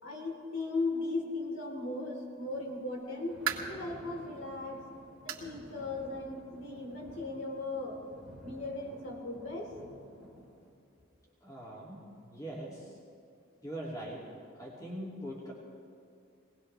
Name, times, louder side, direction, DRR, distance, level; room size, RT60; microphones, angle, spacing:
voice 1, 0.0-4.8 5.2-8.0 8.4-9.7, left 2 dB, 75° left, -2 dB, 3.6 m, -37 dB
sound 1, 2.8-3.9 4.4-4.5 5.3-5.5 5.9-6.0 6.5-6.6 7.7-7.8, right 8 dB, 85° right, 2.0 m, -37 dB
Thunder, 3.0-10.7, equal, 5° right, 2.1 m, -53 dB
voice 2, 11.4-12.9 13.6-14.2 14.5-15.5, right 1 dB, 15° left, -4 dB, 2.6 m, -42 dB
22.5 x 18.5 x 3.4 m, 2.5 s
head